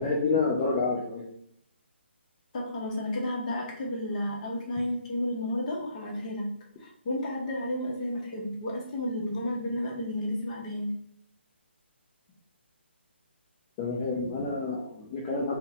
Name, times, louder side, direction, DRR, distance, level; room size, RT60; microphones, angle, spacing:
voice 1, 0.0-1.2 13.8-15.6, left 3 dB, 20° left, -5 dB, 0.4 m, -28 dB
voice 2, 2.5-6.5 6.8-10.9, left 1 dB, 35° left, -2 dB, 0.7 m, -32 dB
2.6 x 2.0 x 2.8 m, 0.69 s
figure-of-eight pair, 150°, 6 cm